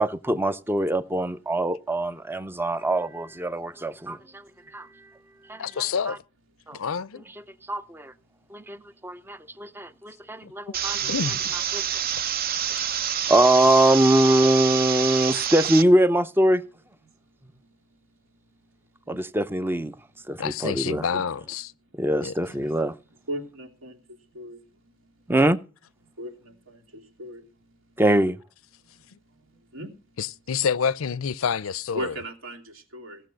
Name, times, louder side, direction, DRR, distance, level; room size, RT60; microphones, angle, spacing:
voice 1, 0.0-5.1 5.5-5.6 6.1-6.2 6.7-6.8 7.7-8.1 8.5-11.1 11.7-11.9 12.9-13.0 13.3-16.6 19.1-20.0 20.3-21.1 21.9-23.0 25.3-25.6 28.0-28.4, right 1 dB, 10° right, 0.6 m, -23 dB
voice 2, 5.6-6.2 6.7-7.2 10.4-10.5 11.1-11.4 20.4-21.7 22.2-22.6 29.1-29.2 30.2-32.1, left 6 dB, 85° left, 0.5 m, -28 dB
sound 1, 10.7-15.8, right 9 dB, 45° right, 0.7 m, -27 dB
voice 3, 23.3-23.9 24.3-24.6 26.2-26.3 26.7-26.8 27.2-27.4 29.7-29.9 31.9-33.2, equal, 75° right, 2.9 m, -35 dB
16.5 x 6.7 x 6.4 m
head